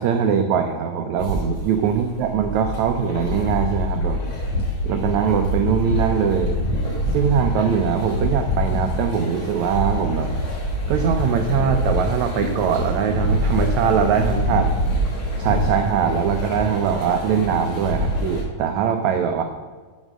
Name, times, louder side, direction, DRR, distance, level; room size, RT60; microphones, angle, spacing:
voice 1, 0.0-4.2 4.8-6.5 7.1-10.3 10.9-14.7 15.4-19.4, right 7 dB, 85° right, 6 dB, 1.6 m, -22 dB
sound 1, 1.2-18.4, equal, 50° left, 4.7 m, -25 dB
9.2 x 6.5 x 6.1 m, 1.5 s
omnidirectional pair, 4.0 m